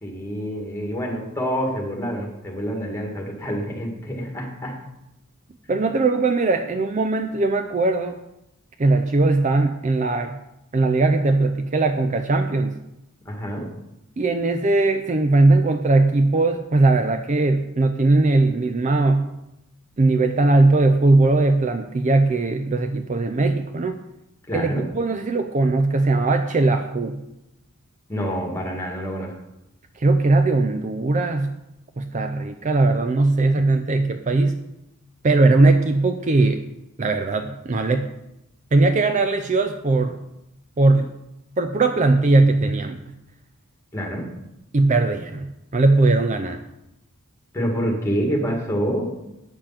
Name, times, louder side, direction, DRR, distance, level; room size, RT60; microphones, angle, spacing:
voice 1, 0.0-4.7 13.3-13.7 24.5-24.8 28.1-29.3 43.9-44.3 47.5-49.1, equal, 10° left, -1 dB, 1.9 m, -27 dB
voice 2, 5.7-8.2 8.8-10.4 10.7-12.8 14.2-19.3 20.0-24.0 24.5-27.2 30.0-31.5 32.0-34.6 35.2-36.6 37.0-38.1 38.7-40.2 40.8-41.2 41.6-43.0 44.7-46.6, right 2 dB, 35° right, 7 dB, 0.5 m, -19 dB
9.0 x 6.8 x 5.8 m, 0.89 s
head